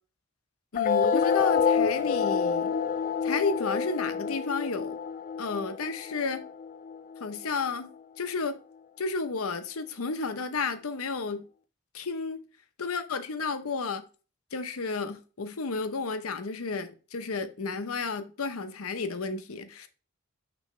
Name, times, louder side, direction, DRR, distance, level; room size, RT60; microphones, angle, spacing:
voice 1, 0.7-2.7 3.2-5.0 5.4-6.4 7.2-7.9 8.2-8.6 9.0-11.4 11.9-12.4 12.8-14.0 14.5-19.9, left 4 dB, 75° left, 0.8 m, -32 dB
sound 1, 0.7-7.7, left 6 dB, 40° left, 0.4 m, -28 dB
6.1 x 3.1 x 5.5 m
head